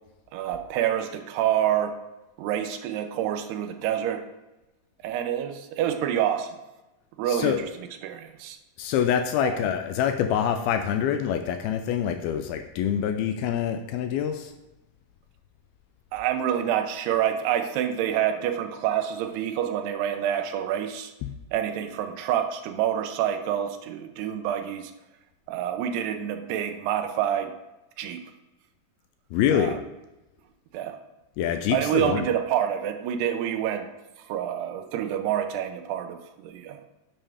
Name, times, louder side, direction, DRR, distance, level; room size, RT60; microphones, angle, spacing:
voice 1, 0.3-2.0 2.4-4.2 5.0-6.6 7.2-7.6 8.0-8.6 9.4-9.6 16.1-21.1 21.5-24.9 25.5-27.5 28.0-28.2 29.5-29.8 30.7-31.0 31.7-33.9 34.3-36.8, right 10 dB, 80° right, 7 dB, 2.7 m, -27 dB
voice 2, 7.3-7.6 8.8-14.5 21.2-21.3 29.3-29.8 31.4-32.2, left 9 dB, 80° left, 7 dB, 2.3 m, -25 dB
11.0 x 7.3 x 3.4 m, 1.0 s
omnidirectional pair, 4.8 m